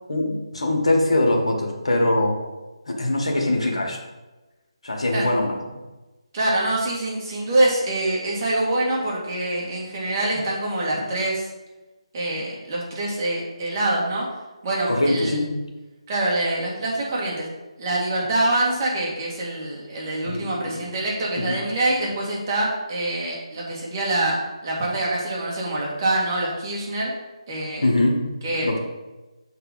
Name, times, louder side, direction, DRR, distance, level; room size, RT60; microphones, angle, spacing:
voice 1, 0.1-2.4 2.9-4.0 4.8-5.6 14.9-15.5 20.2-20.4 20.7-20.8 21.4-21.6 27.8-28.3 28.6-28.8, left 1 dB, 70° left, 0 dB, 1.7 m, -22 dB
voice 2, 6.3-11.5 12.1-14.2 14.6-15.4 16.1-17.5 17.8-24.4 24.6-27.1 27.5-27.9 28.4-28.7, right 1 dB, 30° right, -4 dB, 2.0 m, -25 dB
7.1 x 4.0 x 5.4 m, 1.1 s
figure-of-eight pair, 155°, 3 cm